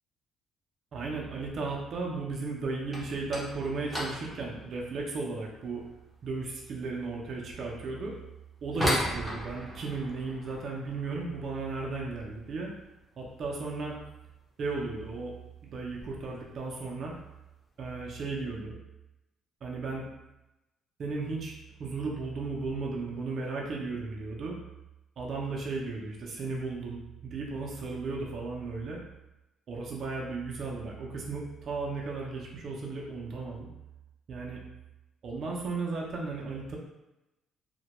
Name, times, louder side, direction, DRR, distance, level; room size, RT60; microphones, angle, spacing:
voice 1, 0.9-5.8 6.2-8.1 8.6-12.7 13.2-14.0 14.6-15.3 15.6-17.1 17.8-18.7 19.6-20.0 21.0-24.6 25.2-29.0 29.7-33.7 34.3-34.6 35.2-36.8, right 3 dB, 50° right, -2 dB, 0.4 m, -35 dB
sound 1, 2.8-13.6 13.8-14.4 14.7-15.0 15.3-15.4 16.1-16.2 17.1-17.4 17.7-18.2, equal, 10° left, 0.6 m, -38 dB
2.1 x 2.1 x 2.8 m, 0.97 s
cardioid pair, 130°, 0 cm